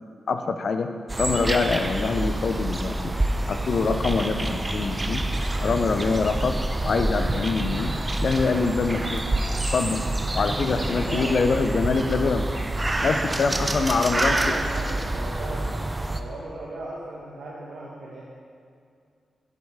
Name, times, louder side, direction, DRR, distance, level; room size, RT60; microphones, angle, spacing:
voice 1, 0.3-0.9 1.2-3.1 3.5-5.2 5.6-6.6 6.8-7.9 8.2-9.2 9.7-10.0 10.3-12.5 13.0-14.5, left 4 dB, 70° left, 7 dB, 0.5 m, -24 dB
sound 1, 1.1-16.2, right 1 dB, 25° right, 0.5 m, -27 dB
voice 2, 10.7-11.6 13.2-15.8 16.1-18.2, right 2 dB, 80° right, -5 dB, 0.9 m, -37 dB
10.5 x 4.8 x 3.5 m, 2.3 s
supercardioid pair, 45°, 0 cm